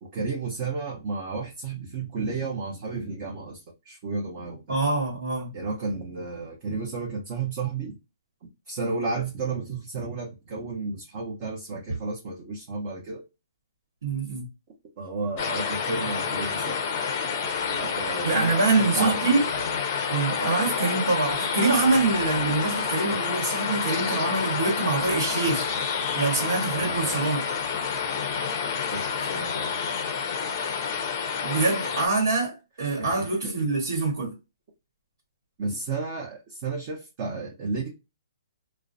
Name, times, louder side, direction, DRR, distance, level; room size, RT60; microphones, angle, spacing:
voice 1, 0.0-4.8 5.5-8.0 8.7-13.2 15.0-16.8 17.7-19.7 26.6-27.2 28.9-29.8 33.0-33.5 35.6-37.9, right 4 dB, 30° right, 0.6 m, -32 dB
voice 2, 4.7-5.5 14.0-14.5 18.2-19.4 20.1-25.7 26.1-27.4 31.4-34.3, right 3 dB, 80° right, 1.0 m, -25 dB
sound 1, 15.4-32.1, left 6 dB, 30° left, 0.5 m, -29 dB
2.4 x 2.0 x 2.5 m
hypercardioid pair, 170°, 2 cm